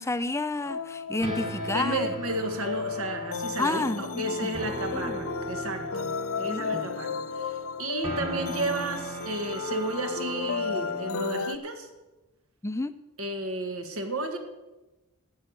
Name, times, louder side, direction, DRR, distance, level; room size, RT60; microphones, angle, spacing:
voice 1, 0.0-2.1 3.6-4.5 4.9-5.2 6.4-6.9 12.6-12.9, left 2 dB, 10° left, 11 dB, 0.5 m, -30 dB
sound 1, 0.6-11.6, left 5 dB, 65° left, 0.6 m, -34 dB
sound 2, 1.2-11.4, right 1 dB, 25° right, 1.6 m, -39 dB
voice 2, 1.7-6.1 6.4-11.9 13.2-14.4, right 2 dB, 70° right, 5 dB, 1.8 m, -33 dB
13.0 x 8.1 x 8.0 m, 1.1 s
head